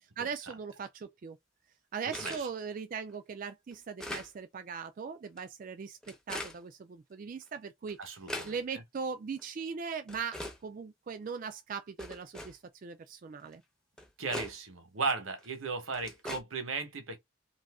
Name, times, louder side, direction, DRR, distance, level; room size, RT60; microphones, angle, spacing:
voice 1, 0.0-1.4 1.9-8.0 8.4-13.6, right 6 dB, 40° right, 0.3 m, -39 dB
sound 1, 2.1-2.5 3.1-3.2 3.7-4.3 5.2-5.4 6.0-6.6 7.4-7.5 7.9-8.5 9.4-9.5 10.1-10.6 11.3-11.4 12.0-12.5 13.5-13.6 14.0-14.5 15.4-15.5 15.9-16.4, left 1 dB, 5° left, 0.6 m, -40 dB
voice 2, 8.0-8.6 14.2-17.2, right 4 dB, 85° right, 1.0 m, -36 dB
2.7 x 2.5 x 3.4 m
head